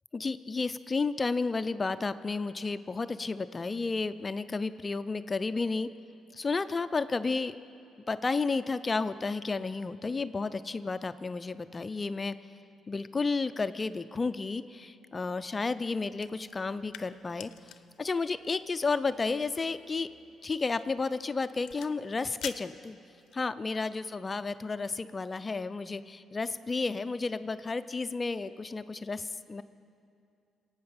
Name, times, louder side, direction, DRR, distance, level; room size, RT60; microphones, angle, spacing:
voice 1, 0.1-5.9 6.3-7.6 8.1-12.3 12.9-17.5 18.0-20.1 20.4-23.0 23.3-29.6, left 4 dB, 30° left, 12 dB, 0.5 m, -32 dB
sound 1, 16.1-23.5, left 11 dB, 85° left, 0.5 m, -49 dB
23.0 x 8.7 x 5.8 m, 2.5 s
cardioid pair, 90°, 0 cm